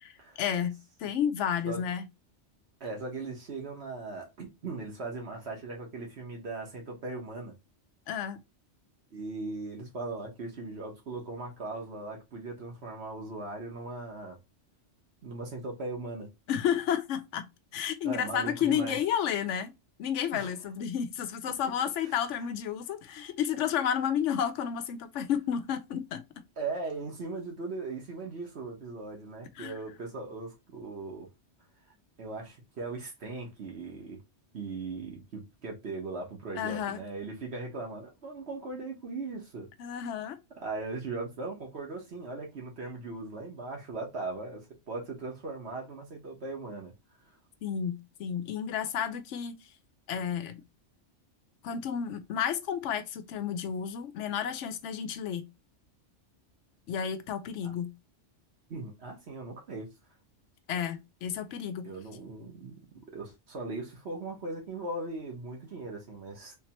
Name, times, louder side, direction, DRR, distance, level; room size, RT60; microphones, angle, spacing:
voice 1, 0.4-2.1 8.1-8.4 16.5-17.5 17.7-19.7 20.0-26.2 29.6-29.7 36.5-37.0 39.8-40.4 47.6-49.5 50.1-50.6 51.6-55.5 56.9-57.9 60.7-61.9, left 8 dB, 80° left, 0.9 m, -31 dB
voice 2, 2.8-7.5 9.1-14.4 15.2-16.3 18.0-19.0 20.3-20.5 22.0-22.1 26.6-31.3 32.2-34.2 34.5-39.7 40.6-44.6 44.9-46.9 57.6-57.7 58.7-59.9 61.8-62.8 63.1-66.6, right 3 dB, 60° right, 1.3 m, -39 dB
3.5 x 3.2 x 2.9 m
omnidirectional pair, 1.2 m